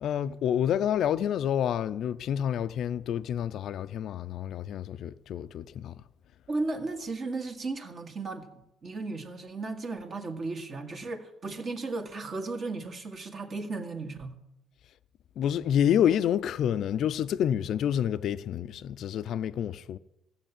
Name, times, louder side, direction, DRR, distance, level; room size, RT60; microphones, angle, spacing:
voice 1, 0.0-6.0 15.4-20.0, left 9 dB, 60° left, 0.5 m, -28 dB
voice 2, 6.5-8.5 8.8-14.4, right 3 dB, 35° right, 1.9 m, -35 dB
15.0 x 7.2 x 9.0 m
cardioid pair, 115°, 0 cm